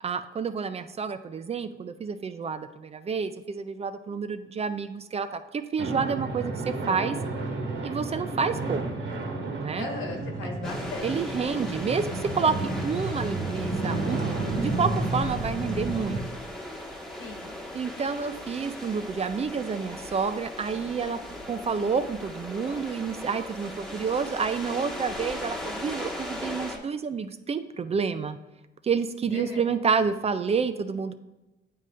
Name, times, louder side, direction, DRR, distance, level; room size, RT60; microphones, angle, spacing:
voice 1, 0.0-7.2 7.8-8.8 9.6-9.9 11.0-12.6 12.8-14.2 14.6-16.2 17.7-21.2 21.5-28.4 28.8-31.1, right 5 dB, 30° right, 11 dB, 0.4 m, -29 dB
sound 1, 5.8-16.2, right 2 dB, 70° right, 1.3 m, -31 dB
voice 2, 9.7-11.1 11.4-11.6 17.2-17.5 29.3-29.7, left 3 dB, 85° left, 1 dB, 1.5 m, -37 dB
sound 2, 10.6-26.8, left 1 dB, 5° left, 1.3 m, -38 dB
9.1 x 3.8 x 3.2 m, 1.0 s
cardioid pair, 90°, 20 cm